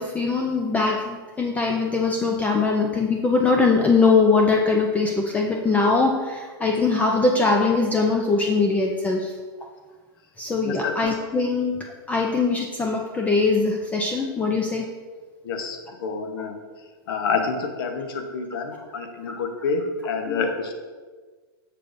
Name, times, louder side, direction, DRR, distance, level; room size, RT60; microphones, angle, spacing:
voice 1, 0.0-9.3 10.4-11.8 12.1-14.9 18.8-18.9 20.3-20.5, left 4 dB, 10° left, 1 dB, 0.4 m, -22 dB
voice 2, 10.6-10.9 15.4-16.5 17.1-20.7, left 5 dB, 65° left, 5 dB, 1.0 m, -28 dB
6.8 x 6.7 x 2.6 m, 1.4 s
hypercardioid pair, 130°, 13 cm